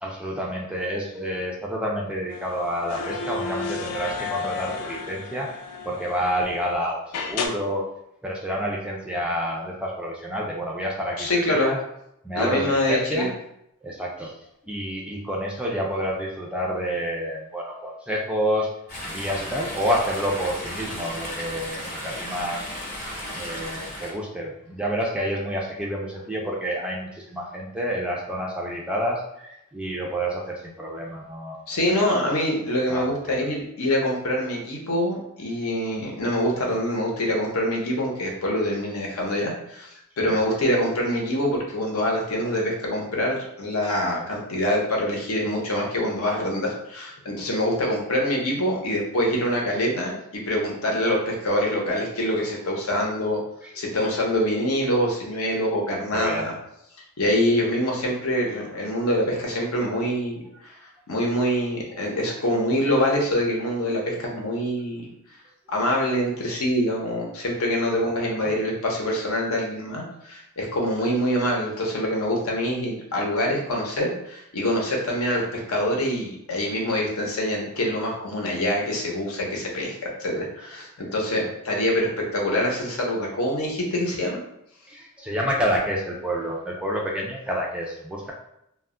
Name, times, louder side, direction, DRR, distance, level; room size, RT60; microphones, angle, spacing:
voice 1, 0.0-5.5 5.8-7.8 8.2-11.8 12.2-13.3 13.8-14.3 14.7-18.7 19.1-22.6 23.3-31.6 31.9-32.2 32.9-33.0 33.4-33.5 40.2-40.4 56.1-56.5 68.4-68.5 84.9-88.3, equal, 5° right, -2 dB, 0.3 m, -28 dB
sound 1, 2.3-6.7 7.1-7.5, left 5 dB, 90° left, 0.4 m, -32 dB
voice 2, 11.2-11.7 12.3-13.3 31.7-39.9 40.2-53.4 53.7-56.5 57.2-60.7 61.1-65.1 65.7-84.4, equal, 65° left, -1 dB, 0.7 m, -25 dB
Chatter / Stream, 18.9-24.1, left 1 dB, 35° left, 0.8 m, -34 dB
2.2 x 2.1 x 3.6 m, 0.78 s
head